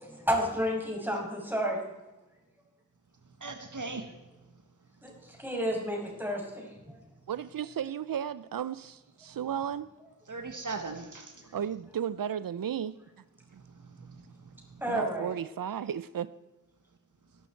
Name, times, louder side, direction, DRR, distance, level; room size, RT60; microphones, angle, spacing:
voice 1, 0.0-1.8 5.0-7.1 11.5-11.6 14.8-15.3, equal, 5° right, -1 dB, 5.9 m, -31 dB
voice 2, 3.2-4.1 4.4-4.5 10.3-11.5 13.5-14.8, right 3 dB, 65° right, 6 dB, 1.4 m, -41 dB
voice 3, 7.3-9.9 11.5-13.0 13.5-13.6 14.9-16.3, right 9 dB, 90° right, 17 dB, 0.5 m, -34 dB
19.0 x 11.5 x 4.5 m, 1.1 s
wide cardioid pair, 60°, 33 cm